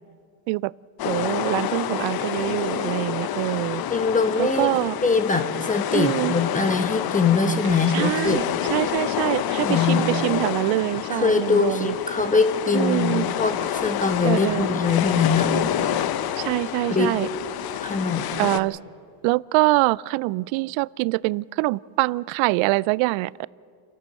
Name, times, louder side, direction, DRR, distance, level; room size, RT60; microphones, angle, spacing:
sound 1, 1.0-18.6, left 11 dB, 45° left, 1.0 m, -28 dB
voice 1, 1.0-3.8 4.4-5.0 5.9-6.3 7.9-11.9 12.7-13.3 14.2-14.7 16.4-17.3 18.4-18.8 19.2-23.5, right 22 dB, 65° right, 23 dB, 0.5 m, -24 dB
voice 2, 3.9-8.4 9.6-10.0 11.1-15.7 16.9-17.1 17.7-18.4, left 4 dB, 15° left, 8 dB, 1.1 m, -22 dB
29.0 x 12.0 x 7.6 m, 2.3 s
supercardioid pair, 115°, 50 cm